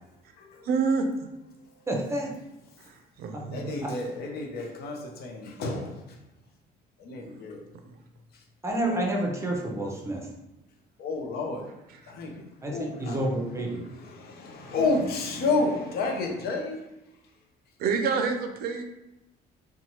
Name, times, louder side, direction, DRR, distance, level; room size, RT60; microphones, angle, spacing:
voice 1, 0.6-1.1 2.9-3.8 17.8-18.8, right 5 dB, 65° right, 6 dB, 0.4 m, -27 dB
voice 2, 1.9-2.3 3.3-3.4 3.8-3.9 8.6-10.3 12.6-13.8, right 1 dB, 15° right, -1 dB, 0.6 m, -29 dB
voice 3, 3.5-6.0 7.0-7.6 9.0-9.1 11.0-11.7 12.1-13.2 14.0-16.9, left 3 dB, 65° left, 1 dB, 0.6 m, -30 dB
2.7 x 2.2 x 2.9 m, 0.92 s
cardioid pair, 110°, 17 cm